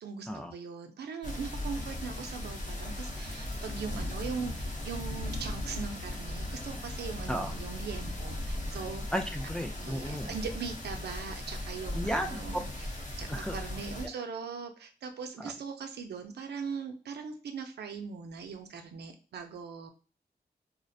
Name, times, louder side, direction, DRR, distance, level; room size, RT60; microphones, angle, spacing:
voice 1, 0.0-9.0 9.8-12.9 13.2-19.9, right 5 dB, 75° right, 6 dB, 0.4 m, -40 dB
sound 1, 1.2-14.1, left 1 dB, 45° left, 0.7 m, -37 dB
voice 2, 9.1-10.3 11.9-12.4 13.3-13.6 15.4-15.5, equal, 5° left, 3 dB, 0.3 m, -34 dB
2.4 x 2.0 x 2.6 m, 0.37 s
wide cardioid pair, 95°, 17 cm